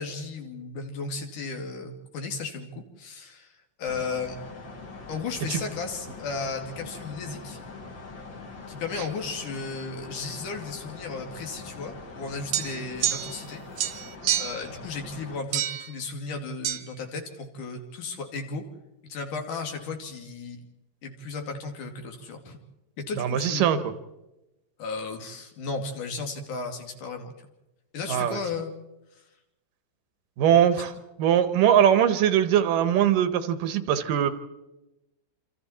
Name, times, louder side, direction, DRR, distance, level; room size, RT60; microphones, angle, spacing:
voice 1, 0.0-3.5 3.8-4.4 5.1-7.6 8.7-14.1 14.4-18.7 19.1-20.6 21.0-22.6 23.1-23.8 24.8-27.3 27.9-28.7, left 4 dB, 70° left, 3 dB, 3.9 m, -35 dB
sound 1, 3.8-15.4, left 3 dB, 35° left, 2.8 m, -43 dB
sound 2, 12.5-13.5 13.8-14.7 15.5-15.9 16.6-16.8, right 11 dB, 65° right, 2.2 m, -28 dB
voice 2, 23.2-23.9 28.1-28.4 30.4-30.9 31.2-34.3, right 9 dB, 85° right, 10 dB, 2.9 m, -21 dB
27.5 x 26.5 x 4.3 m, 0.97 s
omnidirectional pair, 3.9 m